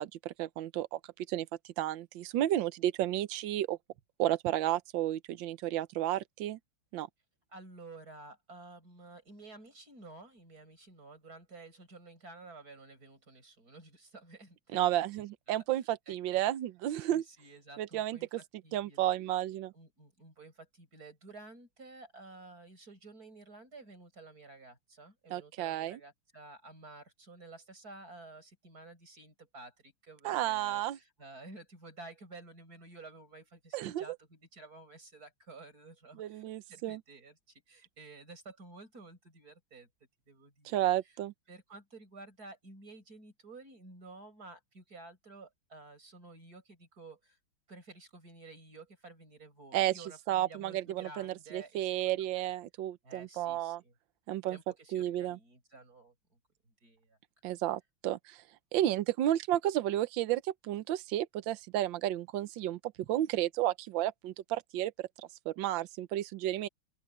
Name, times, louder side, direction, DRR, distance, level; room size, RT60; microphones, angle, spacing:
voice 1, 0.0-1.5 1.8-3.8 4.2-6.6 6.9-7.1 14.7-17.2 17.8-18.4 18.7-19.7 25.3-26.0 30.2-31.0 33.7-34.1 36.2-37.0 40.6-41.3 49.7-49.9 50.3-53.8 54.3-54.6 54.9-55.4 57.4-58.4 58.7-65.1 65.4-66.7, right 13 dB, 70° right, 1.5 m, -32 dB
voice 2, 7.5-15.6 16.1-16.4 17.0-19.1 19.7-36.4 36.7-39.9 40.3-40.9 41.5-47.4 47.7-52.6 53.0-53.9 54.5-56.4 56.8-57.2, right 3 dB, 45° right, 8.3 m, -52 dB
open air
omnidirectional pair, 2.3 m